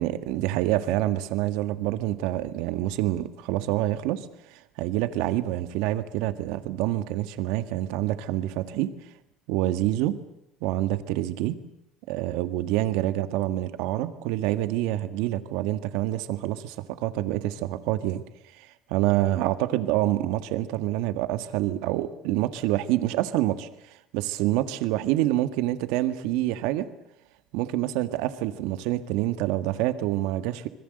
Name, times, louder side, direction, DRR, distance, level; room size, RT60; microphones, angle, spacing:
voice 1, 0.0-4.3 4.5-8.9 9.5-10.2 10.6-11.6 12.1-16.8 17.0-18.2 18.5-23.7 24.1-26.9 27.5-30.7, right 14 dB, 80° right, 11 dB, 1.8 m, -27 dB
26.5 x 21.5 x 8.0 m, 0.82 s
cardioid pair, 130°, 0 cm